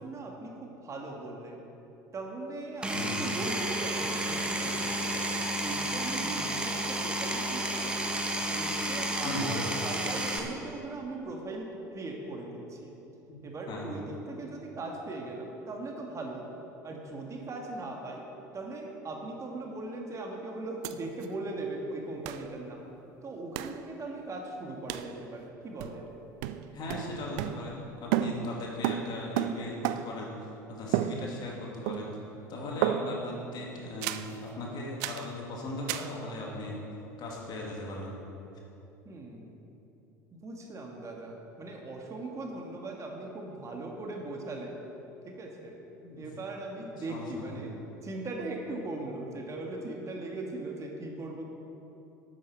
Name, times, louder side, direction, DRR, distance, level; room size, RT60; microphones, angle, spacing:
voice 1, 0.0-1.6 2.1-5.2 5.6-8.0 8.5-12.9 13.4-16.5 16.8-18.2 18.5-22.8 23.2-26.1 39.1-39.6 40.3-44.7 45.2-45.8 46.2-47.8 48.0-51.4, right 2 dB, 30° right, 0 dB, 1.8 m, -39 dB
Power tool, 2.8-10.4, right 1 dB, 10° right, 1.4 m, -31 dB
voice 2, 2.9-3.3 9.2-9.6 13.3-13.4 13.7-13.9 26.7-29.8 30.0-30.3 30.7-32.1 32.5-36.8 37.2-38.2 46.0-46.2 47.1-47.6, left 2 dB, 45° left, -2 dB, 2.6 m, -38 dB
sound 1, 20.8-20.9 21.2-21.3 22.2-22.5 23.5-23.8 24.9-25.1 25.8-26.1 26.4-27.9 28.1-30.3 30.9-31.6 31.9-32.3 32.8-33.3 34.0-34.3 35.0-35.3 35.9-36.1, right 11 dB, 60° right, 0.5 m, -32 dB
12.0 x 8.8 x 4.5 m, 3.0 s
hypercardioid pair, 75°, 10 cm